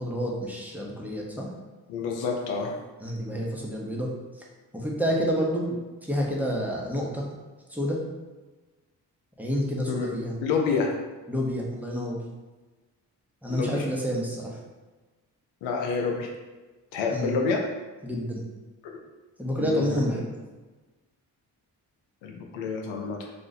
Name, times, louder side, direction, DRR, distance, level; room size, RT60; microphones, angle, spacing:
voice 1, 0.0-1.5 3.0-4.1 4.7-5.8 6.0-7.2 7.7-8.0 9.4-10.3 11.3-12.2 13.4-14.5 17.1-17.3 18.0-18.4 19.4-20.2, equal, 5° right, -3 dB, 0.9 m, -28 dB
voice 2, 1.9-2.8 9.9-10.1 10.4-10.9 13.5-13.8 15.6-16.3 16.9-17.6 19.5-20.0 22.2-23.3, left 5 dB, 85° left, 1 dB, 0.5 m, -28 dB
2.6 x 2.4 x 4.0 m, 1.2 s
supercardioid pair, 40°, 43 cm